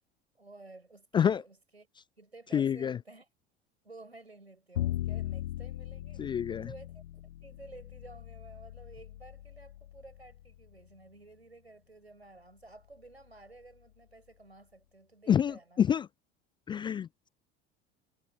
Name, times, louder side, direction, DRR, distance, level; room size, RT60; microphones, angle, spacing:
voice 1, 0.3-1.9 2.2-3.3 3.8-6.3 6.6-15.8, right 2 dB, 85° right, 5.8 m, -53 dB
voice 2, 2.5-3.0 6.2-6.7 15.3-16.1 16.7-17.3, left 8 dB, 15° left, 0.3 m, -28 dB
Bowed string instrument, 4.7-10.9, left 13 dB, 65° left, 1.3 m, -39 dB
figure-of-eight pair, 70°, 31 cm